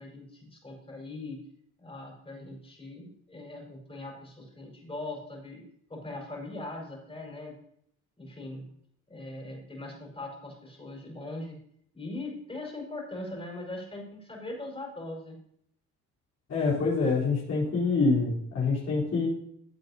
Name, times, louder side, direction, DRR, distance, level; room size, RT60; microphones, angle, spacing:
voice 1, 0.0-1.4 1.8-5.6 5.9-7.6 8.2-8.6 9.1-11.6 11.9-15.4, left 2 dB, 20° left, -1 dB, 4.8 m, -40 dB
voice 2, 16.5-19.3, left 4 dB, 55° left, -7 dB, 3.9 m, -26 dB
15.0 x 7.9 x 2.8 m, 0.68 s
cardioid pair, 90°, 30 cm